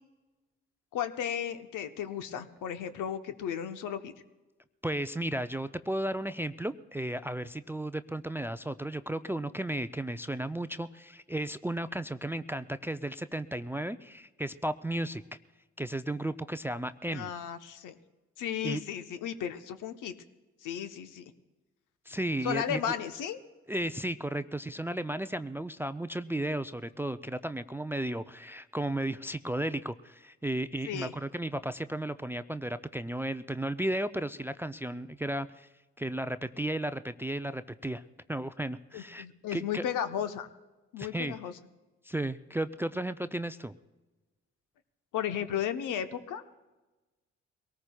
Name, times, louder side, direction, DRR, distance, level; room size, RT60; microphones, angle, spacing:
voice 1, 0.9-4.1 17.1-18.0 18.4-20.1 20.6-21.3 22.4-23.4 30.8-31.1 38.9-40.5 40.9-41.5 45.1-46.6, left 9 dB, 65° left, 10 dB, 1.0 m, -34 dB
voice 2, 4.8-15.2 15.8-17.3 18.6-18.8 22.1-22.9 23.7-35.7 36.0-38.0 38.3-39.3 39.5-39.8 41.0-41.4 42.0-43.7, right 1 dB, 5° right, 13 dB, 0.4 m, -34 dB
23.0 x 18.5 x 2.3 m, 1.1 s
hypercardioid pair, 40°, 34 cm